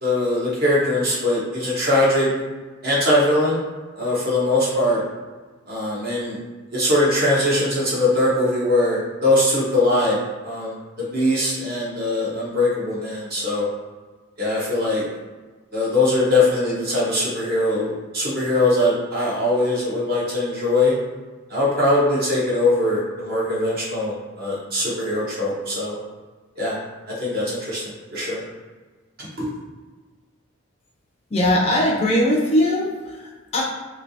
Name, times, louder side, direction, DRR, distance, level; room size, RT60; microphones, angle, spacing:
voice 1, 0.0-2.3 2.8-3.6 4.0-5.0 5.7-6.4 6.7-10.2 10.4-13.7 14.4-15.0 15.7-20.9 21.5-26.0 26.6-26.8 27.2-28.4 29.2-29.4, left 1 dB, 45° right, -6 dB, 1.0 m, -21 dB
voice 2, 31.3-33.6, left 1 dB, 30° left, -2 dB, 0.4 m, -20 dB
3.3 x 2.8 x 2.7 m, 1.3 s
head